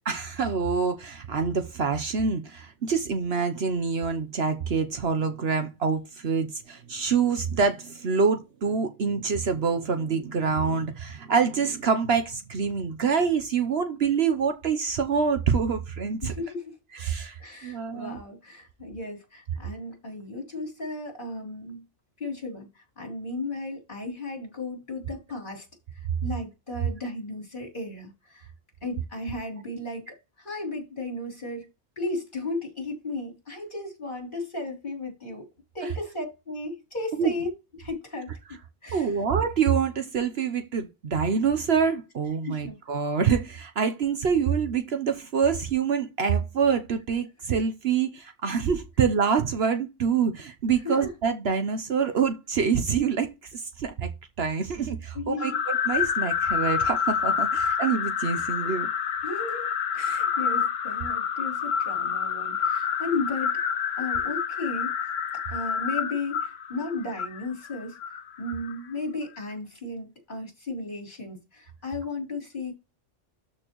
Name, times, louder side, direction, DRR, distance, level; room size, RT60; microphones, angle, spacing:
voice 1, 0.1-16.3 16.9-18.2 35.8-35.9 37.2-37.3 38.9-54.1 54.4-55.5 55.9-58.9, right 6 dB, 60° right, 1.0 m, -26 dB
voice 2, 16.2-16.8 17.4-21.8 22.2-25.7 25.9-28.5 28.8-31.7 32.0-35.5 35.7-37.5 37.8-38.3 38.8-39.1 42.5-42.8 50.8-51.1 55.1-55.5 59.2-63.6 64.0-64.9 65.5-68.0 68.4-72.7, left 2 dB, 40° left, 3.6 m, -35 dB
sound 1, 55.4-68.8, left 7 dB, 85° left, 1.2 m, -28 dB
13.0 x 4.4 x 3.0 m
omnidirectional pair, 1.3 m